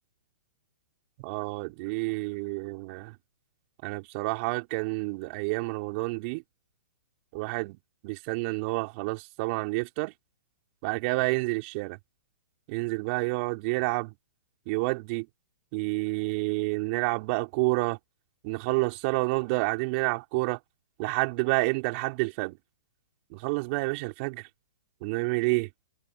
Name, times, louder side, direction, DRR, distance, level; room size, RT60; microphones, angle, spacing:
voice 1, 1.2-3.1 3.8-6.4 7.3-7.8 8.0-10.1 10.8-12.0 12.7-14.1 14.7-15.3 15.7-18.0 18.4-20.6 21.0-22.6 23.3-24.5 25.0-25.7, right 27 dB, 40° right, 5.0 m, -29 dB
hypercardioid pair, 130°, 9 cm